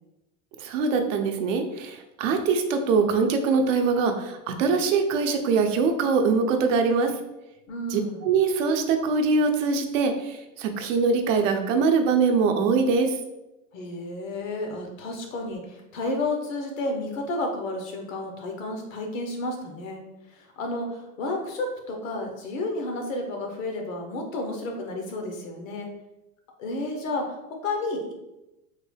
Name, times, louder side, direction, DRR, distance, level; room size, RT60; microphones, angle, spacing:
voice 1, 0.6-7.1 7.9-13.1, right 4 dB, 80° right, 5 dB, 0.7 m, -23 dB
voice 2, 7.7-8.3 13.7-20.0 20.3-25.9 26.6-28.1, left 2 dB, 90° left, 3 dB, 1.0 m, -31 dB
3.7 x 2.3 x 3.2 m, 0.96 s
supercardioid pair, 125°, 38 cm